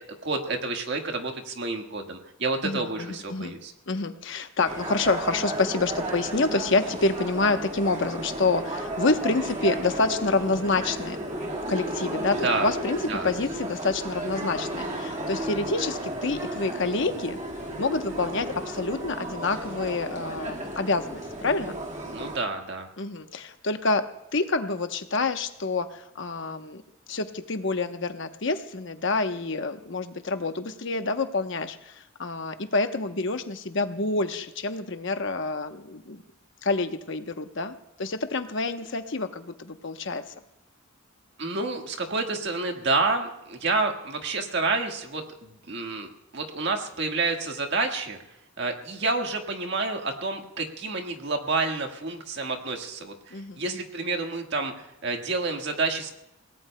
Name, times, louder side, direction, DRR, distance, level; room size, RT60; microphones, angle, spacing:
voice 1, 0.2-3.7 12.4-12.7 13.1-13.3 22.1-22.9 41.4-48.2 48.6-56.1, right 3 dB, 55° right, 3 dB, 1.6 m, -29 dB
voice 2, 2.6-3.5 3.9-11.2 11.7-13.0 13.2-17.4 17.8-21.8 23.0-26.8 27.1-36.2 36.6-40.2 53.3-53.8, left 3 dB, 60° left, 7 dB, 0.9 m, -27 dB
sound 1, 4.6-22.4, right 1 dB, 35° right, 1.8 m, -33 dB
30.0 x 18.0 x 2.2 m, 0.84 s
head